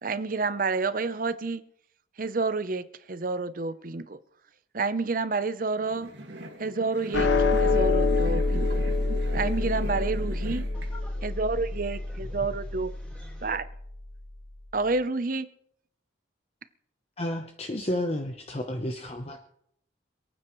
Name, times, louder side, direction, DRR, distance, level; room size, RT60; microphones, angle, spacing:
voice 1, 0.0-1.6 2.2-4.2 4.7-6.1 6.6-7.3 7.6-8.8 9.3-10.6 11.2-12.9 13.4-13.7 14.7-15.5, right 3 dB, 45° right, 0.7 m, -29 dB
sound 1, 5.7-10.9, right 1 dB, 75° right, 2.0 m, -40 dB
sound 2, 7.1-13.7, left 3 dB, 75° left, 1.1 m, -26 dB
voice 2, 10.7-11.4 12.1-12.5 13.0-13.5, left 1 dB, 5° left, 3.8 m, -48 dB
voice 3, 17.2-19.5, left 1 dB, 35° left, 0.9 m, -31 dB
27.5 x 9.2 x 3.1 m
head